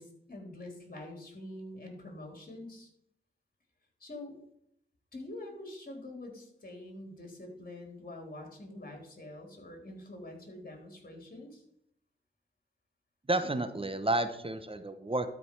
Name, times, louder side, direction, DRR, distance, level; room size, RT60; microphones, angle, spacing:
voice 1, 0.0-2.9 4.0-4.4 5.1-11.6, left 1 dB, 50° left, 2 dB, 3.6 m, -45 dB
voice 2, 13.3-15.3, right 2 dB, 30° right, 9 dB, 1.0 m, -31 dB
12.5 x 5.1 x 4.7 m, 0.74 s
cardioid pair, 45°, 19 cm